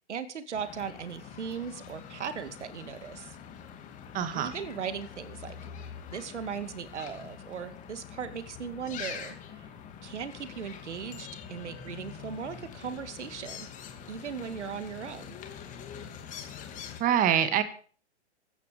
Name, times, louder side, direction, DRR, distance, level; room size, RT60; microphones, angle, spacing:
voice 1, 0.1-3.4 4.3-5.6 6.1-9.7 10.0-13.7 14.1-15.3, right 7 dB, 80° right, 11 dB, 2.4 m, -38 dB
sound 1, 0.5-17.0, left 8 dB, 20° left, 2.6 m, -45 dB
voice 2, 4.1-4.5 17.0-17.6, right 9 dB, 25° right, 10 dB, 2.1 m, -25 dB
16.0 x 13.5 x 5.3 m, 0.43 s
hypercardioid pair, 135°, 35 cm